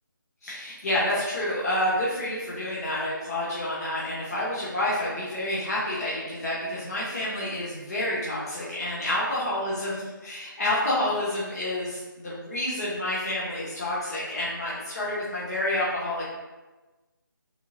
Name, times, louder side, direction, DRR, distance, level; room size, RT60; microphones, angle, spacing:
voice 1, 0.4-16.3, left 1 dB, 45° left, -8 dB, 1.2 m, -29 dB
3.8 x 3.1 x 3.7 m, 1.2 s
figure-of-eight pair, 170°, 12 cm